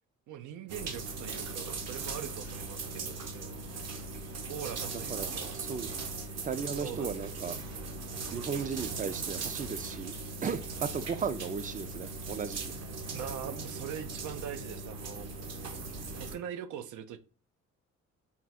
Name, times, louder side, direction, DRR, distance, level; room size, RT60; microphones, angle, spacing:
voice 1, 0.3-3.6 4.5-5.5 6.8-7.2 8.1-8.4 13.1-15.3 16.2-17.2, right 9 dB, 80° right, 10 dB, 0.6 m, -42 dB
sound 1, 0.7-16.3, right 3 dB, 55° right, 0.9 m, -39 dB
voice 2, 4.9-5.9 6.4-7.6 8.3-10.1 10.4-12.7, right 6 dB, 25° right, 13 dB, 0.4 m, -36 dB
3.5 x 2.3 x 4.2 m, 0.36 s
cardioid pair, 90°, 30 cm